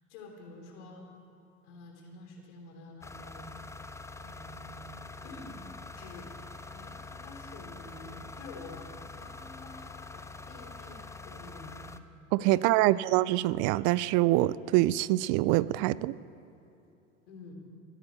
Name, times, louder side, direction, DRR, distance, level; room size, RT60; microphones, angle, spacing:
voice 1, 0.1-1.0 1.6-3.5 4.2-4.9 5.2-5.6 6.0-6.3 6.7-11.9 12.5-13.1 17.3-17.5, left 2 dB, 70° left, 2 dB, 3.4 m, -49 dB
sound 1, 3.0-12.0, left 3 dB, 10° left, 0.7 m, -45 dB
voice 2, 12.3-16.2, right 17 dB, 55° right, 19 dB, 0.5 m, -25 dB
15.0 x 10.0 x 8.2 m, 2.8 s
hypercardioid pair, 75°, 37 cm